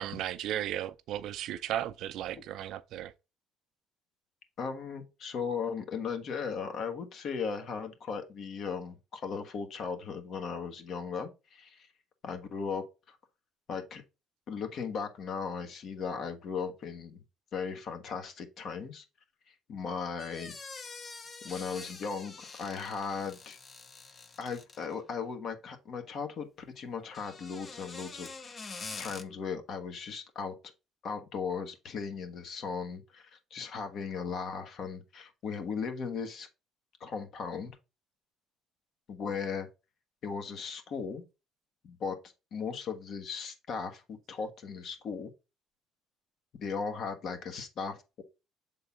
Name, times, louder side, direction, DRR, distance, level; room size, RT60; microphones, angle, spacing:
voice 1, 0.0-3.1, right 12 dB, 70° right, 0.5 m, -35 dB
voice 2, 4.6-11.9 12.2-13.2 13.7-14.0 14.5-17.2 17.5-19.0 19.5-20.6 21.4-23.6 24.4-26.5 26.7-30.5 31.0-36.5 37.0-37.8 39.1-39.7 40.2-41.2 41.8-45.3 46.6-48.2, left 5 dB, 55° left, 1.4 m, -37 dB
sound 1, 20.2-25.0 27.0-29.2, left 4 dB, 30° left, 0.7 m, -46 dB
7.2 x 3.8 x 3.7 m
cardioid pair, 120°, 0 cm